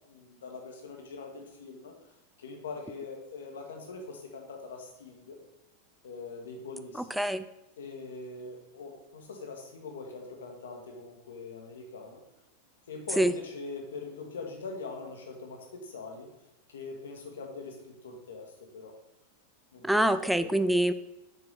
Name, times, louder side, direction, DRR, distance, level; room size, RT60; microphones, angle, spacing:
voice 1, 0.1-1.9 2.4-5.4 6.0-7.1 7.8-12.2 12.9-16.3 16.7-18.9 19.7-20.1 20.4-20.8, left 3 dB, 65° left, 2 dB, 1.5 m, -42 dB
voice 2, 6.9-7.5 13.2-13.3 19.8-20.9, right 1 dB, ahead, 12 dB, 0.4 m, -25 dB
6.8 x 4.7 x 4.9 m, 0.93 s
figure-of-eight pair, 90°, 0 cm